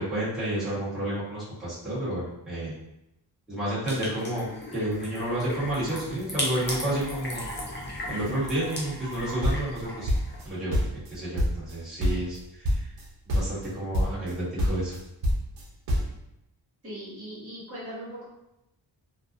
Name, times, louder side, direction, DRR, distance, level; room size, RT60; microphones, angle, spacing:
voice 1, 0.0-2.8 3.5-4.5 4.7-7.5 8.1-10.1 10.4-12.9 13.2-15.0, right 1 dB, ahead, -13 dB, 1.2 m, -30 dB
sound 1, 3.9-10.5, left 1 dB, 25° left, 0.5 m, -36 dB
sound 2, 9.1-10.5 10.7-11.7 12.0-12.4 12.6-13.0 13.3-13.7 13.9-14.3 14.6-16.1, equal, 80° right, 0.7 m, -26 dB
voice 2, 16.8-18.2, equal, 30° right, -10 dB, 1.3 m, -39 dB
2.5 x 2.3 x 2.5 m, 0.86 s
wide cardioid pair, 170°, 44 cm